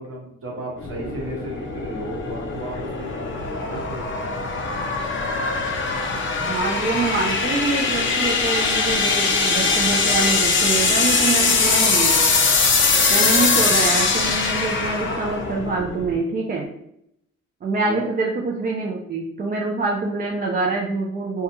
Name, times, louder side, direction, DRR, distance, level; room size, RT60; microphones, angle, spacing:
voice 1, 0.0-4.4 17.8-18.1, right 1 dB, 45° right, -3 dB, 1.1 m, -34 dB
sound 1, 0.8-16.2, left 4 dB, 40° left, 0.5 m, -21 dB
voice 2, 6.4-12.1 13.1-16.7 17.6-21.4, right 3 dB, 30° right, -1 dB, 0.4 m, -25 dB
2.2 x 2.2 x 2.9 m, 0.76 s
cardioid pair, 90°, 30 cm